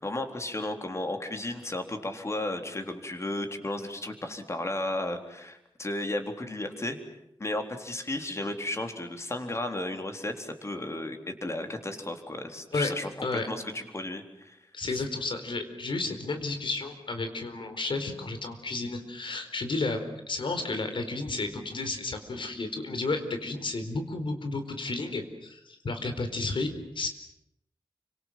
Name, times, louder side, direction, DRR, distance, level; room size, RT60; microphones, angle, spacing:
voice 1, 0.0-7.0 7.4-14.6 14.9-15.0, left 1 dB, 35° left, 6 dB, 3.8 m, -34 dB
voice 2, 14.7-27.1, left 3 dB, 75° left, 7 dB, 4.5 m, -32 dB
29.5 x 25.5 x 7.6 m, 0.81 s
wide cardioid pair, 115°, 9 cm